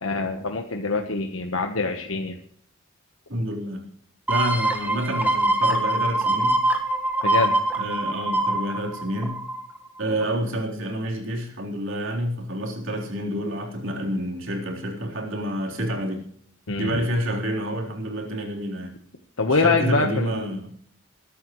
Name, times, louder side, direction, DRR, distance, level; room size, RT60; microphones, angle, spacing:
voice 1, 0.0-2.4 7.2-7.5 16.7-17.0 19.4-20.5, left 3 dB, 75° left, 4 dB, 1.2 m, -24 dB
voice 2, 3.3-3.8 4.3-6.6 7.8-9.4 10.0-16.2 16.8-18.9 19.5-20.7, equal, 70° right, 0 dB, 3.8 m, -28 dB
sound 1, 4.3-9.8 10.2-10.3, right 1 dB, 10° right, 1.5 m, -24 dB
22.0 x 11.5 x 3.2 m, 0.64 s
head